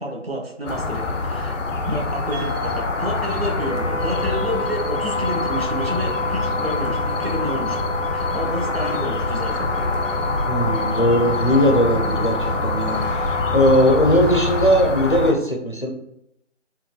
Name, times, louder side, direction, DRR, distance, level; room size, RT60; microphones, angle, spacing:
voice 1, 0.0-1.6 1.9-7.8 8.1-9.7, equal, 55° right, 0 dB, 0.7 m, -29 dB
sound 1, 0.7-15.3, left 3 dB, 90° left, 0.5 m, -25 dB
sound 2, 2.3-7.2, left 4 dB, 35° right, 1.2 m, -40 dB
Wind instrument woodwind instrument, 3.6-14.0, left 2 dB, 85° right, 1.3 m, -29 dB
voice 2, 10.5-13.0 13.5-15.9, equal, 45° left, 1 dB, 0.5 m, -18 dB
3.8 x 2.1 x 2.2 m, 0.80 s
figure-of-eight pair, 175°, 37 cm